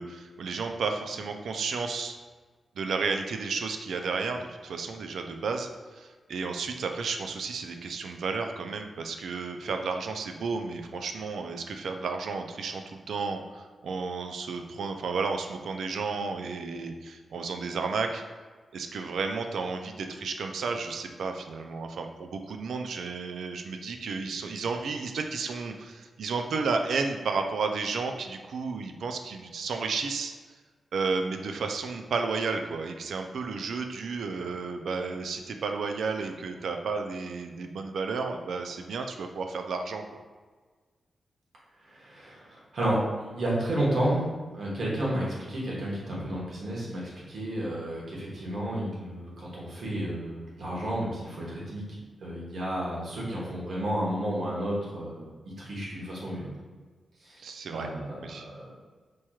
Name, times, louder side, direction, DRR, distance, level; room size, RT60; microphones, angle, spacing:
voice 1, 0.0-2.2 2.8-18.2 18.7-30.3 30.9-40.0 57.4-57.9 58.2-58.5, right 4 dB, 90° right, 5 dB, 0.3 m, -32 dB
voice 2, 42.0-44.2 44.5-47.0 47.3-55.3 55.6-56.5 57.2-57.4 57.7-58.7, right 1 dB, 70° right, -5 dB, 1.2 m, -31 dB
4.4 x 2.9 x 2.3 m, 1.4 s
wide cardioid pair, 100°, 0 cm